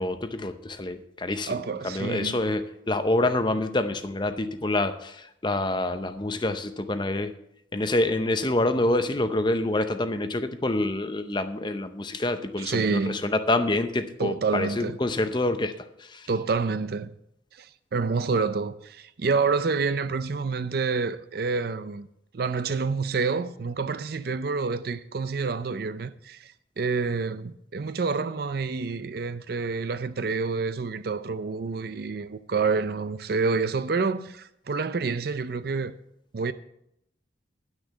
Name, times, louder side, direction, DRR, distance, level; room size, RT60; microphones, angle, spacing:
voice 1, 0.0-7.3 7.7-16.3, left 2 dB, 25° left, 0.6 m, -27 dB
voice 2, 1.5-2.4 12.6-13.2 14.2-15.0 16.3-17.1 17.5-22.1 22.3-36.0 36.3-36.5, right 4 dB, 50° right, 0.5 m, -28 dB
10.5 x 6.5 x 7.2 m
head